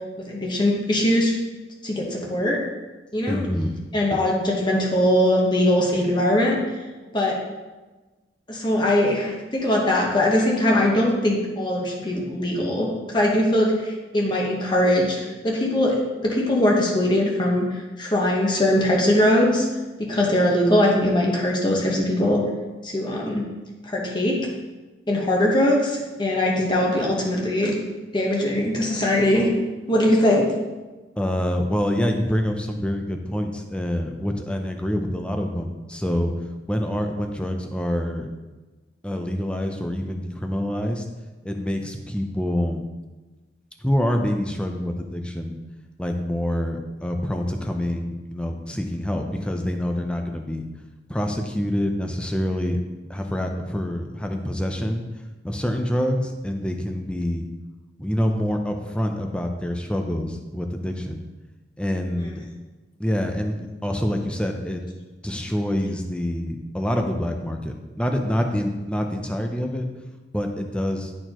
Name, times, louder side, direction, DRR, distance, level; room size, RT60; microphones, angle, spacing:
voice 1, 0.3-1.3 1.8-2.6 3.1-3.4 3.9-6.6 7.1-7.3 8.5-12.9 13.1-15.9 16.2-17.6 18.0-19.7 20.1-22.4 22.8-23.4 23.9-24.4 25.1-27.7 28.1-29.5 29.9-30.5, left 1 dB, 25° left, -2 dB, 1.0 m, -21 dB
voice 2, 3.3-3.7 4.1-4.2 31.2-36.3 36.7-38.3 39.0-41.0 41.4-42.8 43.8-45.6 46.0-50.7 51.1-52.8 53.1-55.0 55.4-57.5 58.0-61.2 61.8-62.5 63.0-64.8 65.2-69.9 70.3-71.1, equal, 5° left, 4 dB, 0.6 m, -26 dB
11.0 x 4.4 x 3.0 m, 1.2 s
head